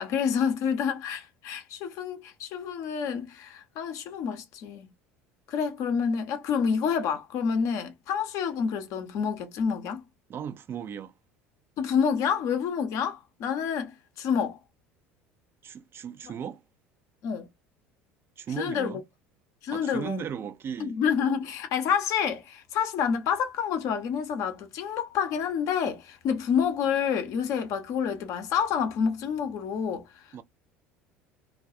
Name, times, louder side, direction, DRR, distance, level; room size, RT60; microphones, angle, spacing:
voice 1, 0.0-4.9 5.5-10.0 11.8-14.6 17.2-17.5 18.6-19.0 19.6-20.2 20.8-30.0, left 7 dB, 55° left, 0.6 m, -28 dB
voice 2, 10.3-11.1 15.6-16.6 18.4-19.0 19.7-21.0 30.3-30.4, right 8 dB, 35° right, 0.4 m, -36 dB
2.3 x 2.2 x 2.6 m
hypercardioid pair, 70°, 7 cm